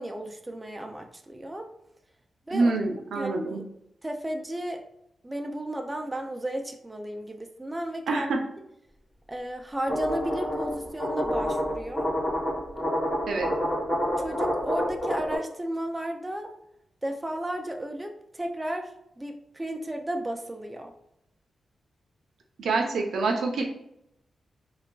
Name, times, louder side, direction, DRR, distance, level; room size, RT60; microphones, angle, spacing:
voice 1, 0.0-1.7 2.5-2.7 3.1-3.7 4.0-4.8 5.2-8.3 9.3-12.1 14.2-16.5 17.0-20.9, right 1 dB, 10° right, 3 dB, 0.3 m, -34 dB
voice 2, 2.5-3.6 8.1-8.4 13.3-13.5 22.6-23.6, right 3 dB, 80° right, 2 dB, 0.5 m, -26 dB
sound 1, 9.9-15.4, equal, 20° left, 1.1 m, -28 dB
3.5 x 2.3 x 2.2 m, 0.78 s
wide cardioid pair, 165°, 0 cm